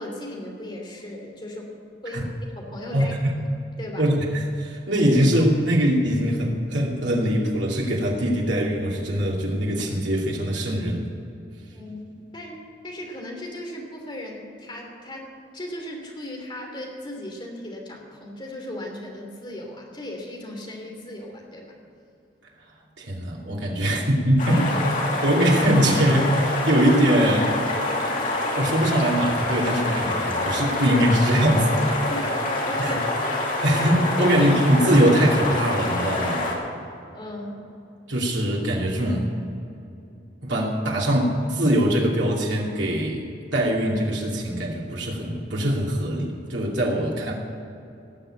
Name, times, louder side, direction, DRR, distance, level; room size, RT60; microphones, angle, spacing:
voice 1, 0.0-1.7 2.0-2.2 2.6-3.4 3.8-4.0 11.7-21.7 24.5-24.6 32.1-33.1 33.5-33.7 34.2-34.4 36.7-36.8 37.1-37.6, left 1 dB, 25° left, 0 dB, 3.0 m, -37 dB
voice 2, 2.9-3.3 4.0-11.1 23.0-24.6 25.2-27.6 28.5-31.9 32.8-33.0 33.6-36.5 38.1-39.3 40.4-43.2 43.5-47.3, equal, 85° right, -2 dB, 2.7 m, -22 dB
sound 1, 24.4-36.6, left 2 dB, 45° left, 2.8 m, -26 dB
18.0 x 6.7 x 9.0 m, 2.7 s
head